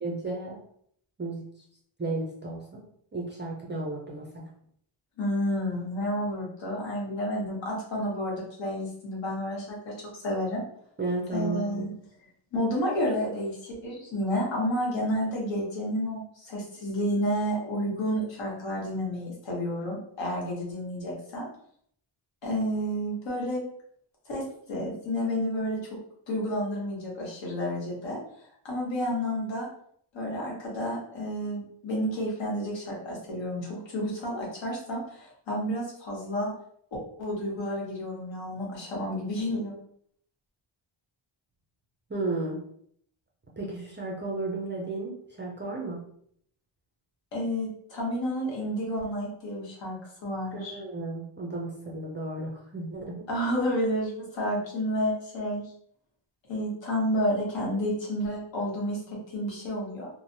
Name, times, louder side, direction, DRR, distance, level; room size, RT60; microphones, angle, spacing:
voice 1, 0.0-0.6 1.2-1.4 2.0-2.8 3.1-4.5 11.0-11.9 42.1-42.6 43.6-46.0 50.5-53.2, right 2 dB, 25° right, -3 dB, 0.4 m, -33 dB
voice 2, 5.2-9.9 10.2-10.6 11.3-11.9 12.5-21.5 22.4-23.6 24.3-25.8 26.3-28.2 28.6-29.7 30.1-36.5 37.2-39.7 47.3-50.7 53.3-55.6 56.5-60.1, equal, 65° left, -3 dB, 1.1 m, -30 dB
3.1 x 2.0 x 2.6 m, 0.66 s
wide cardioid pair, 175°, 49 cm